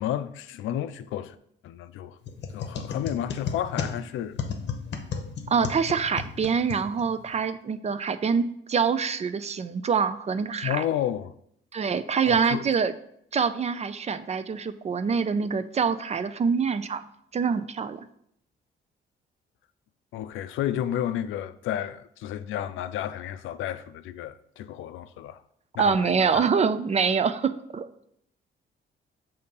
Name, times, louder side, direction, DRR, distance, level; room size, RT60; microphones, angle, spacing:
voice 1, 0.0-1.4 1.6-2.2 2.5-4.4 10.6-11.3 12.2-12.7 20.1-25.4 25.7-26.5, left 11 dB, 80° left, 0.4 m, -31 dB
sound 1, 2.2-7.4, left 6 dB, 60° left, 0.8 m, -34 dB
voice 2, 5.5-10.8 11.7-12.9 13.3-17.0 17.3-18.1 25.8-27.9, right 6 dB, 35° right, 0.4 m, -25 dB
6.5 x 2.8 x 5.3 m
cardioid pair, 90°, 20 cm